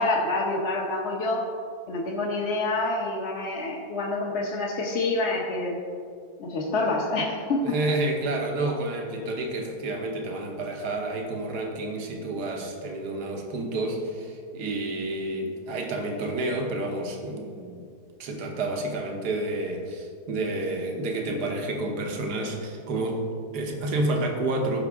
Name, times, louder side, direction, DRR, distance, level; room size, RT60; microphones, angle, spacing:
voice 1, 0.0-1.4 1.9-5.8 6.4-7.7, left 2 dB, 50° left, -3 dB, 1.2 m, -27 dB
voice 2, 7.6-17.8 18.2-24.9, right 2 dB, 80° right, 3 dB, 1.6 m, -29 dB
14.5 x 5.9 x 3.6 m, 2.2 s
omnidirectional pair, 1.7 m